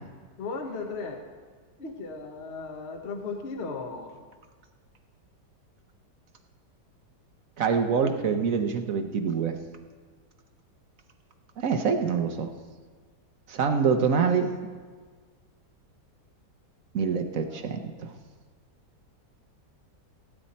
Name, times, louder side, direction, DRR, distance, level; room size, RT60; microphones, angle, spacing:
voice 1, 0.4-1.2 1.8-4.2 13.7-14.0 17.5-17.6, left 4 dB, 45° left, 4 dB, 1.2 m, -36 dB
voice 2, 7.6-9.6 11.6-12.5 13.5-14.5 16.9-18.1, right 6 dB, 60° right, 6 dB, 1.1 m, -25 dB
16.5 x 8.9 x 4.2 m, 1.5 s
omnidirectional pair, 1.8 m